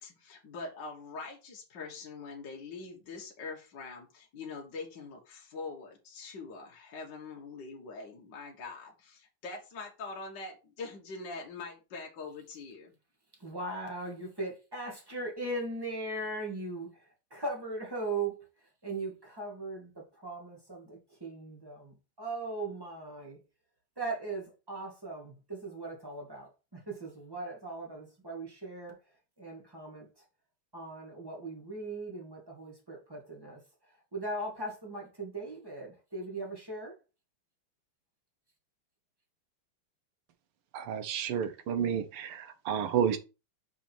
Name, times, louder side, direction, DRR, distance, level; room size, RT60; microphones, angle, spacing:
voice 1, 0.0-12.9, left 4 dB, 55° left, 1.9 m, -43 dB
voice 2, 13.3-23.4 24.0-30.2 30.7-37.0, right 2 dB, 10° right, 2.2 m, -39 dB
voice 3, 40.7-43.2, right 8 dB, 85° right, 1.9 m, -31 dB
6.2 x 4.4 x 4.4 m
omnidirectional pair, 2.4 m